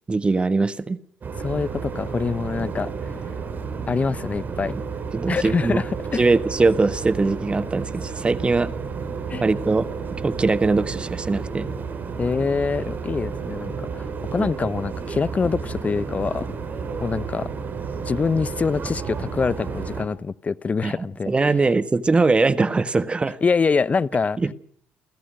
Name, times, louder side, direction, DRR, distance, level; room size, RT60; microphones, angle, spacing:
voice 1, 0.1-1.0 5.1-5.8 6.2-8.7 9.4-9.9 10.2-11.7 14.4-14.5 20.8-20.9 21.3-23.4 24.4-24.5, right 3 dB, 20° right, 1.5 m, -21 dB
sound 1, 1.2-20.0, right 5 dB, 40° right, 6.1 m, -31 dB
voice 2, 1.4-3.1 3.9-4.8 5.3-6.3 9.3-9.4 12.2-16.5 17.0-17.5 18.0-21.3 23.4-24.4, left 5 dB, 30° left, 0.8 m, -25 dB
29.5 x 15.0 x 6.5 m
supercardioid pair, 80°, 5 cm